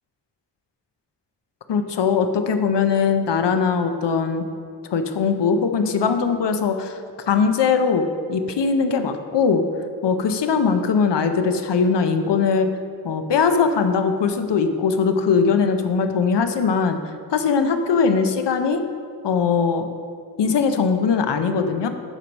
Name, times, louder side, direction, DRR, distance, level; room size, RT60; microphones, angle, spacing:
voice 1, 1.7-4.4 4.9-7.0 7.3-9.6 10.0-12.7 13.0-17.0 17.3-18.8 19.2-19.8 20.4-21.9, left 5 dB, 85° left, 7 dB, 0.7 m, -20 dB
8.0 x 4.6 x 5.3 m, 2.3 s
wide cardioid pair, 65°, 41 cm